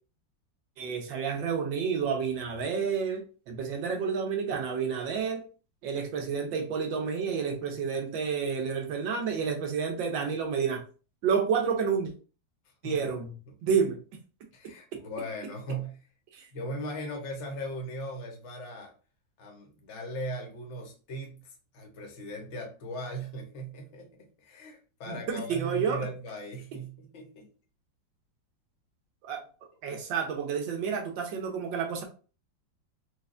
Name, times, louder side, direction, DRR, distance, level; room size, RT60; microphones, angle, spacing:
voice 1, 0.8-5.4 5.8-10.8 11.2-12.1 12.8-13.3 13.6-14.0 14.9-15.0 16.3-16.5 25.1-26.0 29.2-29.4 29.8-32.0, right 6 dB, 75° right, 1.4 m, -30 dB
voice 2, 14.5-16.1 16.5-18.9 19.4-27.5, right 1 dB, 45° left, 1.0 m, -38 dB
4.5 x 2.4 x 2.5 m
omnidirectional pair, 2.1 m